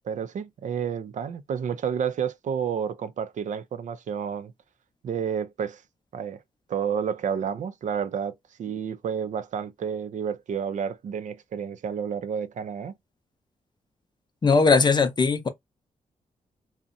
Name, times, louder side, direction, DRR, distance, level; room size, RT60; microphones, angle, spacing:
voice 1, 0.0-4.5 5.0-5.8 6.1-6.4 6.7-12.9, right 7 dB, 60° right, 0.4 m, -30 dB
voice 2, 14.4-15.5, left 4 dB, 30° left, 0.5 m, -19 dB
2.6 x 2.1 x 2.5 m
cardioid pair, 95°, 14 cm